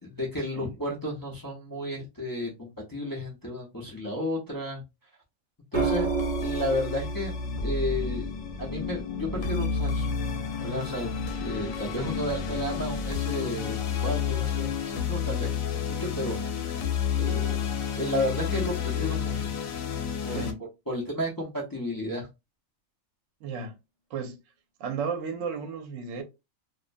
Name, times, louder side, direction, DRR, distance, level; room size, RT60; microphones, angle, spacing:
voice 1, 0.0-4.8 5.7-6.1 6.4-7.3 7.6-8.3 8.6-10.2 10.6-11.1 11.4-17.6 17.9-19.5 20.2-20.5 20.9-22.3, left 1 dB, 25° left, 0.5 m, -33 dB
sound 1, 5.7-20.5, left 6 dB, 85° left, 1.0 m, -30 dB
sound 2, 5.7-9.9 11.6-12.0, right 5 dB, 40° right, 0.7 m, -33 dB
voice 2, 20.3-20.6 23.4-23.8 24.1-24.4 24.8-26.2, right 5 dB, 75° right, 0.9 m, -33 dB
2.4 x 2.1 x 2.4 m
omnidirectional pair, 1.3 m